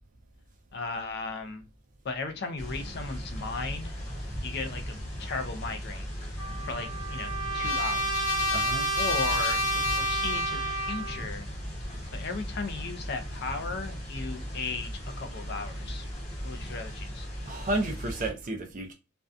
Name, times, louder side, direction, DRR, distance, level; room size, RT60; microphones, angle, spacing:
voice 1, 0.7-1.6 2.0-4.0 4.4-6.0 6.7-8.3 8.9-11.5 12.1-16.1 16.4-17.3, left 3 dB, 50° left, 0.4 m, -36 dB
sound 1, 2.6-18.3, equal, 30° left, 0.8 m, -38 dB
Trumpet, 6.4-11.3, equal, 85° left, 0.7 m, -29 dB
voice 2, 8.5-8.9 17.5-18.9, right 2 dB, 35° right, 0.4 m, -32 dB
2.5 x 2.2 x 2.3 m
head